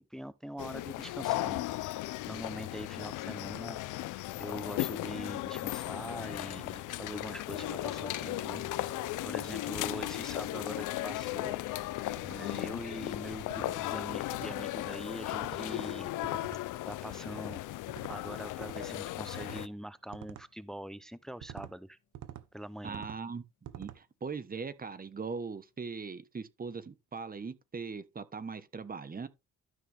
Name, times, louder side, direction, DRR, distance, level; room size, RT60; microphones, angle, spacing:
voice 1, 0.0-2.0 2.3-3.8 4.4-8.6 9.2-11.6 12.2-16.1 16.9-17.6 18.1-22.0 22.5-23.0, equal, ahead, 0.6 m, -43 dB
sound 1, 0.6-19.7, left 16 dB, 85° left, 0.6 m, -36 dB
Gong, 7.5-17.2 18.2-18.5, left 6 dB, 70° left, 2.2 m, -49 dB
sound 2, 9.8-10.1 10.6-10.8 11.3-11.6 12.1-12.4 13.4-13.8 14.3-14.7 15.2-15.7 16.2-16.6 17.9-18.2 18.6-18.9 19.3-19.7 20.1-20.5 21.4-21.7 22.1-22.5 22.9-23.2 23.6-24.0, right 12 dB, 80° right, 1.0 m, -47 dB
voice 2, 22.8-23.4 23.7-29.3, right 5 dB, 30° right, 1.2 m, -40 dB
12.5 x 6.1 x 3.5 m
cardioid pair, 90°, 30 cm